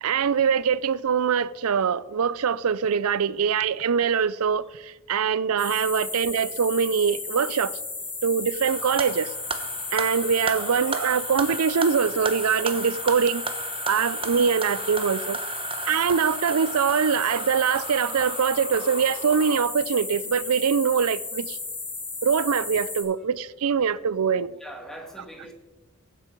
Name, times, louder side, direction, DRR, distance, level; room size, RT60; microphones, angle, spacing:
voice 1, 0.0-7.8 8.2-9.3 9.9-13.5 13.9-15.4 15.9-21.6 22.2-24.5, right 6 dB, 85° right, 0.5 m, -23 dB
sound 1, 5.6-23.0, left 3 dB, 25° left, 3.7 m, -34 dB
sound 2, 8.6-19.6, right 4 dB, 25° right, 1.0 m, -35 dB
voice 2, 24.6-25.5, right 1 dB, ahead, 1.8 m, -42 dB
15.5 x 7.7 x 5.3 m
head